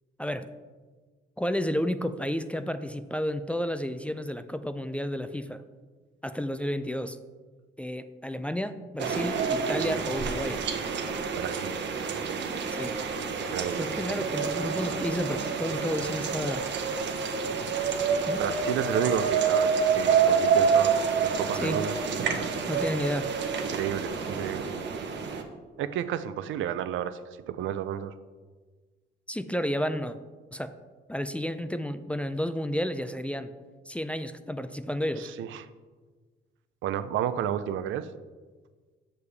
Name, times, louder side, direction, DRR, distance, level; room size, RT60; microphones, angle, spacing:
voice 1, 1.4-5.6 6.2-7.2 7.8-10.6 12.7-13.0 13.8-16.6 18.3-18.4 21.5-21.8 22.7-23.3 29.3-30.2 30.5-30.7 31.1-33.5 33.9-35.3, equal, 5° left, 10 dB, 0.3 m, -31 dB
sound 1, 9.0-25.4, right 6 dB, 65° right, 0.9 m, -28 dB
voice 2, 11.3-11.7 13.5-13.9 18.4-21.9 23.7-24.7 25.8-27.2 27.5-28.1 35.2-35.7 36.8-38.1, right 10 dB, 80° right, 13 dB, 0.4 m, -31 dB
6.9 x 6.5 x 3.3 m, 1.4 s
cardioid pair, 90°, 20 cm